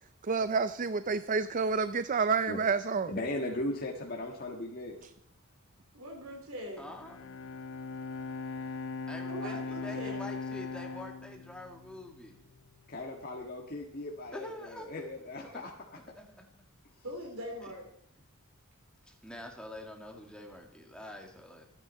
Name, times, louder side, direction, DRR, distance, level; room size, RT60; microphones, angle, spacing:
voice 1, 0.2-3.1, right 5 dB, 35° right, 0.5 m, -29 dB
voice 2, 3.1-4.9 12.9-15.7, left 1 dB, 45° left, 1.7 m, -37 dB
voice 3, 5.9-6.9 9.3-10.3 17.0-17.9, equal, 65° right, 3.5 m, -41 dB
voice 4, 6.8-7.2 9.1-12.3 14.3-15.1 15.4-15.7 16.0-16.5 19.1-21.6, left 1 dB, 5° left, 2.2 m, -46 dB
Bowed string instrument, 6.9-12.3, left 4 dB, 60° left, 0.6 m, -39 dB
25.5 x 10.0 x 4.3 m
head